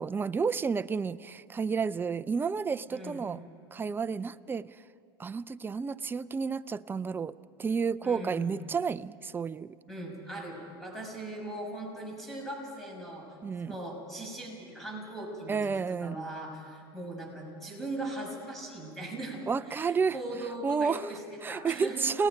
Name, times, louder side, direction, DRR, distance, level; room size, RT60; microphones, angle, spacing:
voice 1, 0.0-3.4 3.7-4.7 5.2-9.8 13.4-13.7 15.5-16.2 19.5-20.2 20.6-21.0 21.4-22.3, right 5 dB, 15° right, 0.5 m, -31 dB
voice 2, 2.9-3.3 8.0-8.5 9.9-13.3 13.6-15.7 16.0-19.4 19.7-22.1, right 1 dB, ahead, 6.8 m, -39 dB
30.0 x 19.5 x 5.2 m
hypercardioid pair, 105°, 13 cm